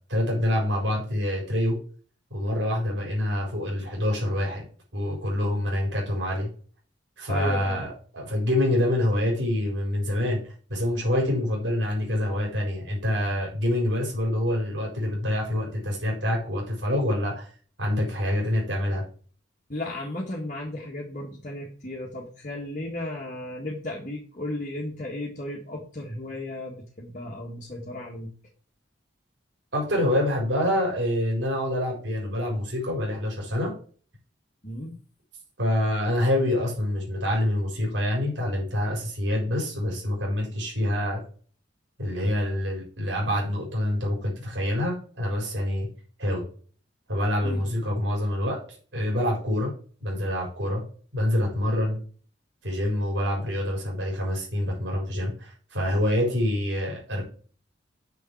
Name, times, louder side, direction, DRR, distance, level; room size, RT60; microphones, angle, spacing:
voice 1, 0.1-1.8 2.3-4.6 4.9-6.5 7.2-10.4 10.7-17.5 17.8-19.0 29.7-33.7 35.6-41.2 42.0-45.9 46.2-46.4 47.1-48.6 48.9-49.7 50.0-50.8 51.1-52.0 52.6-57.2, left 1 dB, 70° right, -2 dB, 4.5 m, -26 dB
voice 2, 7.3-7.8 19.7-28.3 34.6-34.9 47.4-47.7, left 1 dB, 45° left, -3 dB, 1.7 m, -35 dB
7.0 x 6.6 x 4.6 m, 0.41 s
head